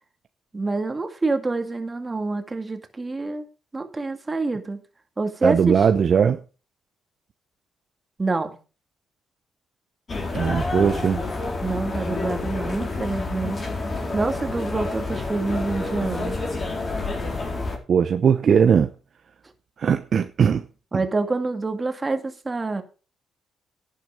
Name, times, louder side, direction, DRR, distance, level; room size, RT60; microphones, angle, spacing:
voice 1, 0.5-3.4 3.7-4.8 5.2-5.8 8.2-8.6 11.6-13.6 14.1-16.4 20.9-22.8, right 3 dB, 25° right, 2.1 m, -26 dB
voice 2, 5.4-6.4 10.3-11.2 17.9-18.9 19.8-20.7 20.9-21.0, right 7 dB, 50° right, 0.8 m, -19 dB
sound 1, 10.1-17.8, left 3 dB, 35° left, 4.2 m, -29 dB
11.0 x 9.3 x 4.8 m
cardioid pair, 90°, 0 cm